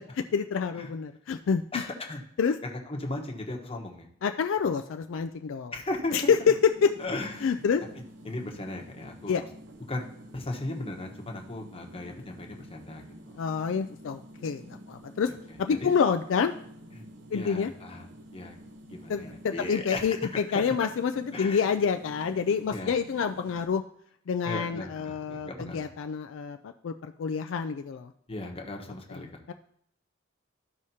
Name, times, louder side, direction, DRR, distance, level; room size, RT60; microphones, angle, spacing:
voice 1, 0.1-1.6 2.4-2.5 4.2-5.7 6.1-6.9 7.4-7.8 9.3-9.4 13.4-15.3 15.6-16.5 17.3-17.7 19.1-23.8 24.3-28.1 29.5-29.6, left 6 dB, 70° left, 7 dB, 0.4 m, -27 dB
voice 2, 1.7-2.2 2.6-4.1 5.7-6.5 7.0-7.6 7.9-9.5 9.9-10.1 10.3-13.3 15.7-15.9 16.9-17.0 17.3-18.1 18.3-18.6 18.9-20.1 20.8-20.9 21.3-21.7 22.7-22.9 24.4-25.9 28.3-29.4, left 2 dB, 30° left, 2 dB, 1.1 m, -37 dB
sound 1, 6.1-23.7, equal, 60° right, 0.8 m, -49 dB
13.5 x 4.9 x 2.8 m, 0.69 s
head